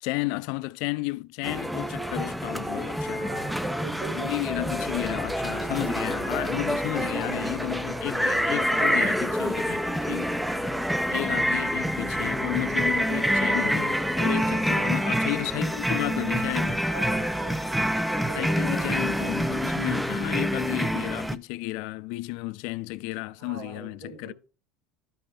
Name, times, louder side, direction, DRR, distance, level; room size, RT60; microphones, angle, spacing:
voice 1, 0.0-3.3 4.2-10.4 11.1-16.8 18.4-24.3, left 22 dB, 70° left, 0.4 m, -32 dB
sound 1, 1.4-21.4, equal, ahead, 0.4 m, -27 dB
voice 2, 3.2-4.7 5.1-5.2 6.9-7.8 8.5-9.3 14.7-15.1 16.9-19.4 23.4-24.3, right 3 dB, 85° right, 3.7 m, -39 dB
sound 2, 4.5-15.0, left 6 dB, 35° left, 0.9 m, -41 dB
12.0 x 5.4 x 2.7 m
supercardioid pair, 125°, 0 cm